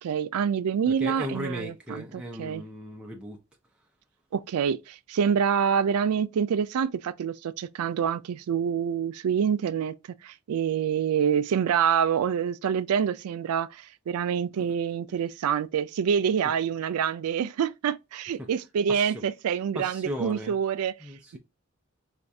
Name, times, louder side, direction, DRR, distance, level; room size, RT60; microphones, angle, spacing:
voice 1, 0.0-2.6 4.3-9.9 10.2-20.9, right 7 dB, 90° right, 0.3 m, -26 dB
voice 2, 0.9-3.4 14.5-14.7 15.1-15.2 18.4-18.5 18.9-19.1 19.7-20.5 21.0-21.4, equal, 5° right, 0.4 m, -37 dB
4.3 x 2.3 x 2.6 m
head